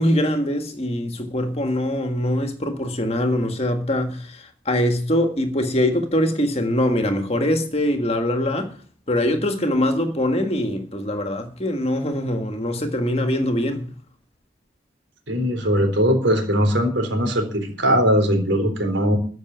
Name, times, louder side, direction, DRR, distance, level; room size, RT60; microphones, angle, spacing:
voice 1, 0.0-8.8 9.1-13.9, left 1 dB, 30° left, 1.6 m, -23 dB
voice 2, 15.3-19.2, equal, 70° right, 3.7 m, -20 dB
14.0 x 6.2 x 9.5 m
head